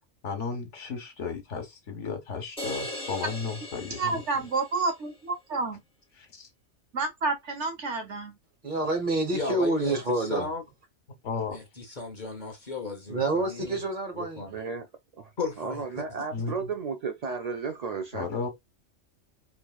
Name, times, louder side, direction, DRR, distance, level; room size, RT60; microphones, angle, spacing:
voice 1, 0.2-4.2 6.2-6.5 11.2-11.6 16.3-16.7 18.1-18.5, left 5 dB, 70° left, 1.3 m, -34 dB
sound 1, 2.6-4.9, left 1 dB, 5° left, 0.8 m, -38 dB
voice 2, 3.9-5.8 6.9-8.4, right 3 dB, 65° right, 1.3 m, -29 dB
voice 3, 8.6-10.5 13.1-14.5, right 2 dB, 40° right, 1.2 m, -27 dB
voice 4, 9.3-10.6 11.5-13.8 14.1-14.5 15.4-16.0, left 3 dB, 40° left, 0.9 m, -35 dB
voice 5, 14.5-14.9 15.1-15.3 15.6-18.5, right 5 dB, 90° right, 0.3 m, -34 dB
4.5 x 2.8 x 2.3 m
omnidirectional pair, 1.3 m